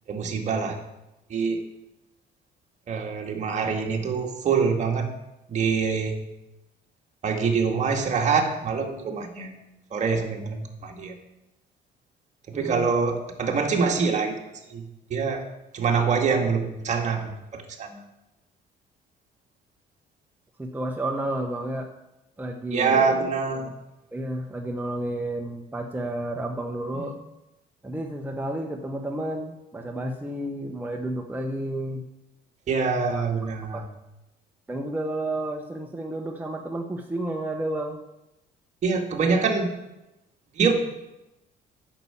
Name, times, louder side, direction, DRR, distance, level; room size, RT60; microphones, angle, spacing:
voice 1, 0.1-0.8 1.3-1.7 2.9-5.1 5.5-6.2 7.2-9.6 9.9-11.2 12.5-15.5 15.7-18.0 22.7-23.7 27.0-27.1 32.7-33.9 38.8-39.7 40.5-40.7, right 5 dB, 45° right, 2 dB, 2.0 m, -25 dB
voice 2, 12.5-12.9 20.6-21.9 22.4-23.1 23.6-23.7 24.1-27.2 27.8-32.0 33.1-33.2 33.7-33.8 34.7-38.0, right 1 dB, 10° right, 2 dB, 1.0 m, -31 dB
8.8 x 6.8 x 8.7 m, 0.94 s
cardioid pair, 110°, 17 cm